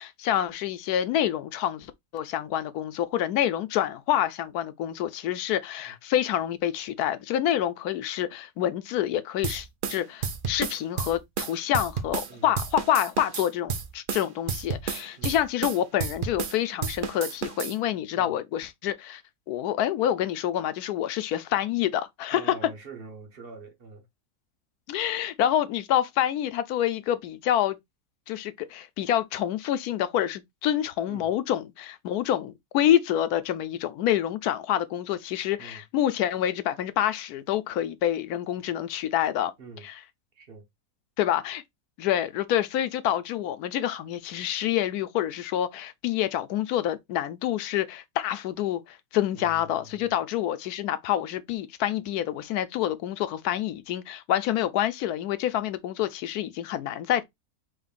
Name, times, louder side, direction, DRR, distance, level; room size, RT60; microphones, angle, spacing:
voice 1, 0.0-19.2 19.5-22.5 24.9-27.8 28.3-39.5 39.8-39.9 41.2-41.6 42.0-57.2, left 11 dB, 80° left, 1.1 m, -27 dB
sound 1, 9.4-12.3 12.6-16.6 16.8-17.7, right 6 dB, 60° right, 0.5 m, -31 dB
voice 2, 22.3-24.1 31.1-31.3 35.6-35.8 39.6-39.9 40.3-40.7 49.3-50.1, right 4 dB, 45° right, 1.0 m, -45 dB
5.3 x 3.3 x 2.5 m
omnidirectional pair, 1.6 m